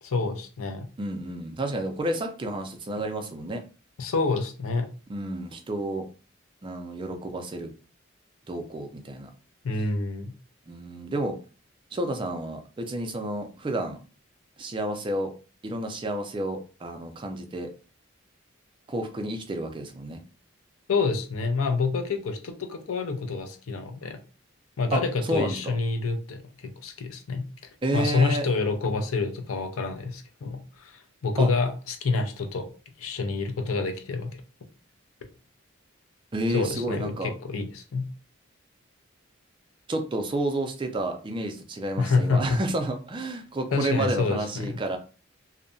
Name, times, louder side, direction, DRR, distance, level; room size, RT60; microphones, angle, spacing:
voice 1, 0.0-0.9 4.0-4.9 9.6-10.3 20.9-24.2 24.8-27.4 27.9-32.7 33.0-34.4 36.5-38.1 42.0-42.4 43.7-44.8, left 4 dB, 90° left, 7 dB, 0.5 m, -27 dB
voice 2, 1.0-3.6 5.1-6.1 6.6-7.7 8.5-9.3 10.7-11.4 11.9-14.0 14.6-15.3 15.6-17.7 18.9-20.2 24.9-25.7 27.8-28.5 31.4-31.5 36.3-37.3 39.9-45.0, right 1 dB, 25° right, 5 dB, 0.3 m, -30 dB
2.6 x 2.1 x 2.5 m, 0.35 s
head